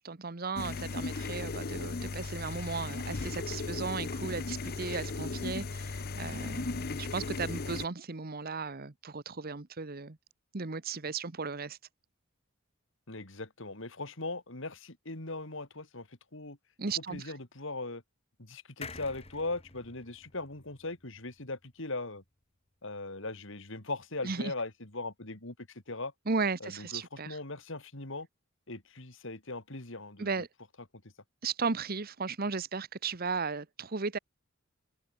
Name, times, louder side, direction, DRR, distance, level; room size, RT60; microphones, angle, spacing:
voice 1, 0.0-10.2 10.5-11.8 16.8-17.3 24.2-24.5 26.3-27.4 30.2-30.5 31.4-34.2, right 4 dB, 45° right, 1.1 m, -35 dB
sound 1, 0.6-7.9, left 3 dB, 45° left, 0.7 m, -36 dB
voice 2, 13.1-16.6 17.1-18.0 18.4-22.2 22.8-26.1 26.6-28.3 28.7-30.3, left 2 dB, 60° left, 3.4 m, -39 dB
sound 2, 18.8-22.3 22.7-22.8 23.0-23.1, left 4 dB, 30° left, 2.1 m, -49 dB
open air
head